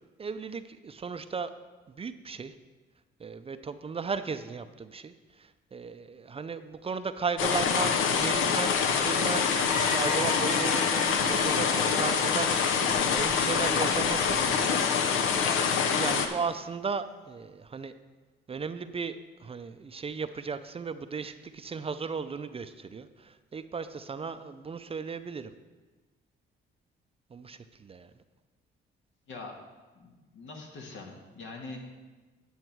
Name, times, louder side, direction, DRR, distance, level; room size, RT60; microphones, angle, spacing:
voice 1, 0.2-1.5 1.9-2.5 3.2-17.9 18.5-25.5 27.3-28.1, right 5 dB, 30° right, 10 dB, 0.5 m, -36 dB
sound 1, 7.4-16.3, left 6 dB, 85° left, 0.8 m, -25 dB
sound 2, 9.7-13.4 13.9-14.7 16.0-16.5, left 3 dB, 35° left, 0.9 m, -38 dB
voice 2, 29.3-29.6 29.9-31.8, left 3 dB, 70° left, 1 dB, 1.7 m, -43 dB
9.7 x 7.2 x 4.6 m, 1.3 s
cardioid pair, 90°, 20 cm